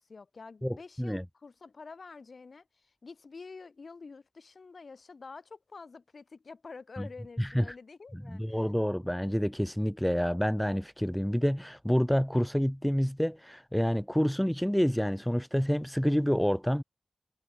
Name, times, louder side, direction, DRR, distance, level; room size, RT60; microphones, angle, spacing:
voice 1, 0.0-8.7, left 4 dB, 75° left, 1.4 m, -48 dB
voice 2, 0.6-1.2 7.0-7.1 7.4-7.6 8.3-16.8, equal, 5° left, 0.5 m, -28 dB
cardioid pair, 50°, 0 cm